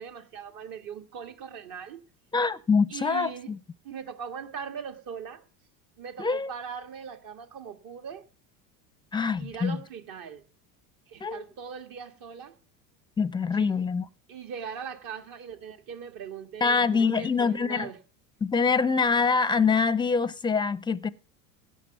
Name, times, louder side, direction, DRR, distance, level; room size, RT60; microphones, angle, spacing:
voice 1, 0.0-2.0 2.9-3.5 3.8-5.4 6.0-8.3 9.4-10.4 11.1-12.5 13.5-13.7 14.3-18.0, right 7 dB, 50° right, 1.9 m, -40 dB
voice 2, 2.3-3.6 6.2-6.5 9.1-9.8 11.2-11.5 13.2-14.1 16.6-17.9 18.4-21.1, left 5 dB, 10° left, 0.6 m, -25 dB
16.5 x 5.9 x 7.0 m
hypercardioid pair, 90°, 42 cm